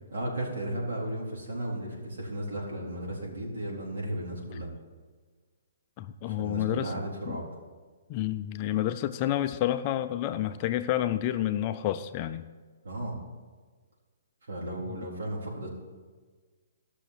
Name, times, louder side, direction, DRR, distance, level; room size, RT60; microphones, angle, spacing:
voice 1, 0.1-4.7 6.2-7.4 12.8-13.2 14.5-15.7, right 1 dB, 75° right, -3 dB, 4.0 m, -35 dB
voice 2, 6.0-6.9 7.3-7.4 8.1-12.5 14.9-15.1, left 12 dB, 20° left, 9 dB, 0.3 m, -29 dB
14.5 x 6.4 x 6.1 m, 1.4 s
hypercardioid pair, 180°, 0 cm